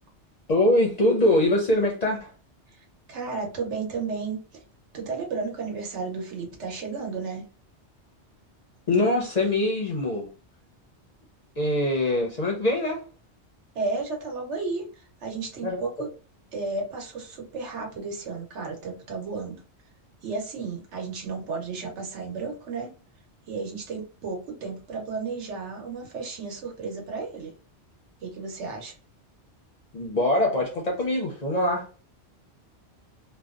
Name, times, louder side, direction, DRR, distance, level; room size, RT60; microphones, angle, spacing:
voice 1, 0.5-2.3 8.9-10.3 11.6-13.0 15.6-15.8 29.9-31.9, left 1 dB, 50° left, 0.5 m, -23 dB
voice 2, 3.1-4.6 4.9-7.4 13.7-16.1 16.5-19.6 20.2-22.9 23.5-27.5 28.2-28.9, right 4 dB, 80° right, 1.1 m, -33 dB
2.7 x 2.0 x 2.3 m
omnidirectional pair, 1.2 m